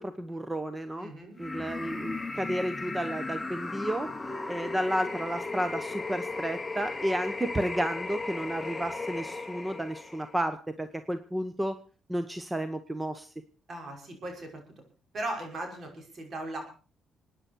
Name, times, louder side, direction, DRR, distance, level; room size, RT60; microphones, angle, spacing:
voice 1, 0.0-1.1 1.4-4.1 4.5-11.8 12.1-13.3, right 1 dB, 15° right, 10 dB, 1.0 m, -32 dB
voice 2, 1.0-1.4 13.7-14.6 15.1-16.6, right 1 dB, 45° right, 3 dB, 5.6 m, -37 dB
sound 1, 1.4-10.4, left 3 dB, 15° left, 1.3 m, -36 dB
27.0 x 9.8 x 4.6 m, 0.38 s
cardioid pair, 90°, 0 cm